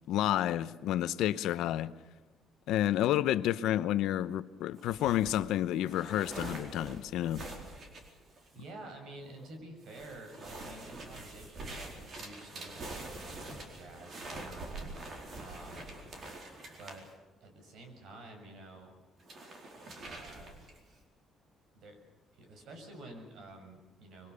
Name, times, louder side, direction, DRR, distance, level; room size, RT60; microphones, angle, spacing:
voice 1, 0.1-1.9 2.7-7.5, left 12 dB, 80° left, 0.8 m, -30 dB
sound 1, 4.8-8.7 9.2-9.6 9.9-17.1 19.2-20.9, right 2 dB, 40° right, 4.3 m, -45 dB
voice 2, 8.5-14.9 15.4-16.0 16.7-17.1 17.4-18.9 20.0-20.6 21.7-22.0 22.3-24.3, right 2 dB, 60° right, 6.5 m, -50 dB
25.0 x 23.5 x 6.9 m
cardioid pair, 160°, 0 cm